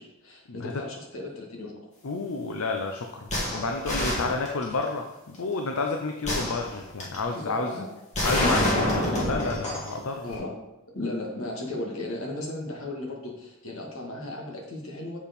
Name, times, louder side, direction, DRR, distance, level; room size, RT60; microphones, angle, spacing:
voice 1, 0.0-1.9 7.3-7.9 8.4-8.9 10.2-10.6 10.9-15.2, left 2 dB, 75° left, -1 dB, 1.9 m, -35 dB
voice 2, 2.0-7.8 8.2-10.4, left 3 dB, 90° left, 4 dB, 0.6 m, -30 dB
sound 1, 3.3-4.9 6.2-7.2 8.1-9.9 10.3-10.4, left 1 dB, 35° left, 2.1 m, -27 dB
7.0 x 4.6 x 5.3 m, 0.92 s
head